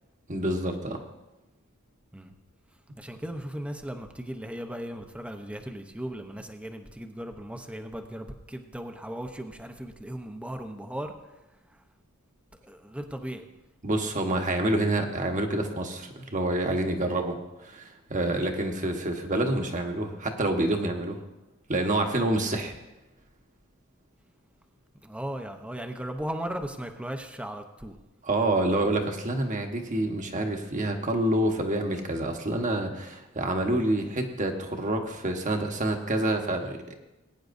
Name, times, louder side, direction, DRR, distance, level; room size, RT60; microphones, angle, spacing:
voice 1, 0.3-1.0 13.8-21.2 21.7-22.7 28.2-36.9, right 1 dB, 35° right, 4 dB, 1.3 m, -27 dB
voice 2, 3.0-11.4 11.7-11.8 12.6-13.5 18.3-18.4 25.0-28.0, right 1 dB, 5° right, 5 dB, 0.8 m, -37 dB
20.5 x 9.6 x 2.6 m, 1.0 s
head